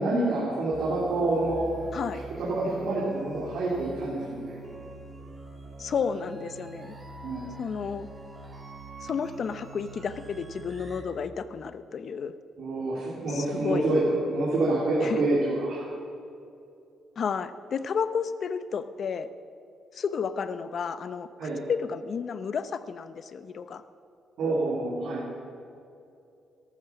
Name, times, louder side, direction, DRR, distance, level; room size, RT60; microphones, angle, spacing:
voice 1, 0.0-1.7 2.1-4.5 7.2-7.5 12.6-15.8 21.4-21.6 24.4-25.3, right 2 dB, 75° right, -6 dB, 3.3 m, -27 dB
sound 1, 0.7-11.0, right 3 dB, 20° right, 2.3 m, -43 dB
voice 2, 5.8-7.0 7.6-8.1 9.0-12.3 13.3-13.9 15.0-15.2 17.2-19.3 19.9-21.3 21.7-23.8, left 6 dB, 55° left, 12 dB, 0.7 m, -31 dB
13.5 x 12.5 x 6.0 m, 2.6 s
cardioid pair, 90°, 0 cm